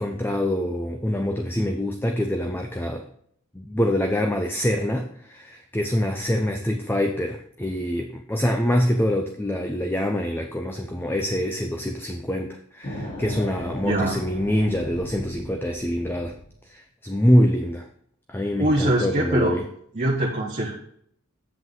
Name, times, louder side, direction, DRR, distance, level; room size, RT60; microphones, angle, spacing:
voice 1, 0.0-3.0 3.5-16.3 16.7-17.9 18.3-19.6, equal, 10° left, 4 dB, 0.6 m, -25 dB
sound 1, 12.8-16.5, equal, 40° left, 3.3 m, -37 dB
voice 2, 13.8-14.2 18.6-19.5 19.9-20.7, right 1 dB, 35° right, -3 dB, 1.3 m, -23 dB
7.9 x 7.7 x 3.7 m, 0.66 s
head